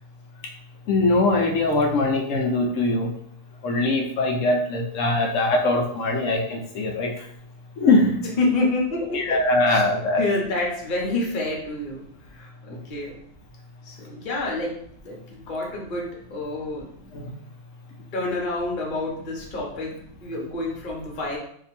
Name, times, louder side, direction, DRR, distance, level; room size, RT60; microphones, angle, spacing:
voice 1, 0.9-3.1 3.6-7.3 7.8-8.2 9.1-10.2 17.1-17.3, left 2 dB, 65° left, 2 dB, 0.9 m, -22 dB
voice 2, 8.4-9.4 9.7-9.8 10.2-12.0 12.3-13.2 13.8-14.7 15.0-16.9 18.1-19.9 20.2-21.4, left 2 dB, 40° left, -2 dB, 0.9 m, -28 dB
2.8 x 2.6 x 4.1 m, 0.67 s
omnidirectional pair, 1.7 m